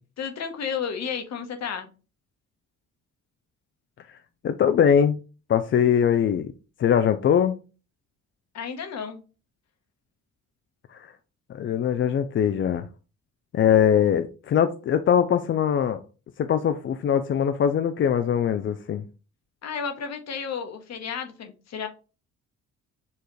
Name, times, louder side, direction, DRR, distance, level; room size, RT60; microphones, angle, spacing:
voice 1, 0.2-1.9 8.5-9.2 19.6-21.9, left 7 dB, 60° left, 1.1 m, -32 dB
voice 2, 4.4-5.2 5.5-6.5 6.8-7.5 10.9-11.1 11.5-12.9 13.5-16.0 16.4-19.0, left 8 dB, 40° left, 0.4 m, -22 dB
6.8 x 2.4 x 3.1 m
cardioid pair, 90°, 30 cm